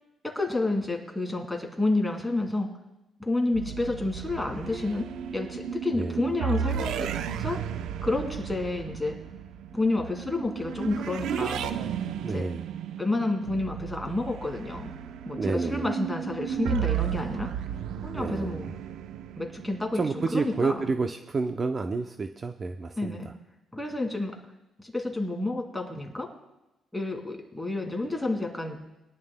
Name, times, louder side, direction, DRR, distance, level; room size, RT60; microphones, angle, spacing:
voice 1, 0.2-2.7 3.2-5.1 5.3-7.7 8.0-9.2 9.7-11.7 12.2-12.5 13.0-14.9 15.3-17.5 18.0-18.7 19.4-20.9 23.0-23.3 23.7-24.4 24.8-26.3 26.9-28.8, left 2 dB, 5° left, 1 dB, 2.3 m, -30 dB
sound 1, 3.5-21.0, right 8 dB, 80° right, 0.6 m, -34 dB
voice 2, 12.2-12.6 15.4-15.9 18.1-18.6 19.9-23.3, right 4 dB, 35° right, 6 dB, 0.6 m, -29 dB
22.0 x 11.0 x 2.2 m, 0.95 s
cardioid pair, 110°, 0 cm